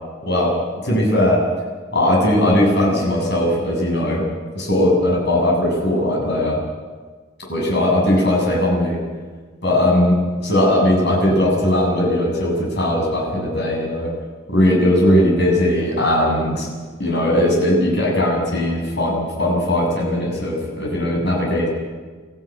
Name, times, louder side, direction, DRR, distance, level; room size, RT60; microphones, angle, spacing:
voice 1, 0.2-0.6 0.8-1.4 1.9-4.2 4.5-6.6 7.5-9.0 9.6-14.1 14.5-16.7 17.0-21.7, left 1 dB, 55° left, -2 dB, 7.6 m, -18 dB
22.5 x 14.5 x 9.4 m, 1.5 s
head